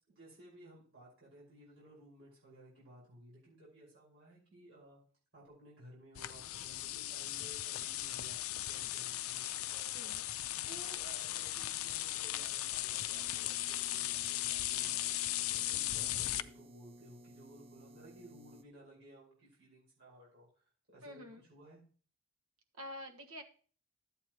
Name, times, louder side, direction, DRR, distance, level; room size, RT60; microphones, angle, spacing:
voice 1, 0.2-5.0 5.3-15.1 15.5-20.5 20.9-21.8, right 1 dB, 60° right, -7 dB, 5.4 m, -57 dB
sound 1, 6.1-16.4, left 14 dB, 75° left, 0.4 m, -37 dB
sound 2, 13.1-18.6, equal, 25° right, 0.4 m, -57 dB
voice 2, 21.0-21.4 22.8-23.4, equal, 80° right, 3 dB, 1.4 m, -47 dB
12.5 x 8.3 x 3.0 m, 0.43 s
head